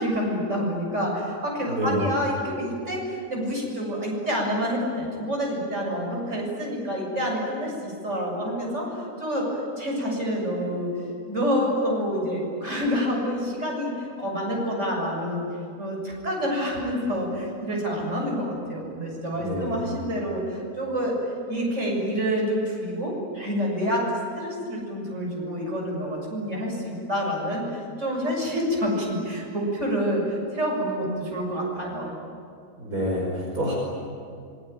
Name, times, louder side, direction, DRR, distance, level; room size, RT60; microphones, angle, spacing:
voice 1, 0.0-8.9 9.2-9.5 9.8-10.9 11.3-15.4 15.8-21.2 21.5-24.1 24.4-32.1, equal, 55° right, -1 dB, 7.6 m, -28 dB
voice 2, 1.7-2.1 19.3-19.8 32.8-33.8, equal, 85° right, -2 dB, 5.6 m, -27 dB
27.0 x 23.5 x 9.3 m, 2.3 s
omnidirectional pair, 1.5 m